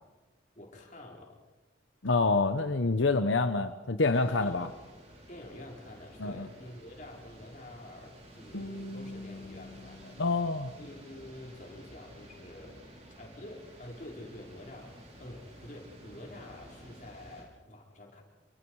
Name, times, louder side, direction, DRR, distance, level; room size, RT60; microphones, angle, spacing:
voice 1, 0.5-1.4 4.3-4.8 5.3-10.2 10.8-12.9 13.2-14.9 15.2-18.2, left 1 dB, 40° left, -1 dB, 4.8 m, -48 dB
voice 2, 2.0-4.7 6.2-6.5 10.2-10.7, left 3 dB, 85° left, 9 dB, 1.0 m, -27 dB
sound 1, 4.1-17.4, right 1 dB, 35° right, 5.0 m, -52 dB
Guitar, 8.5-11.5, left 1 dB, 70° left, 1.7 m, -45 dB
28.0 x 24.0 x 4.8 m, 1.1 s
head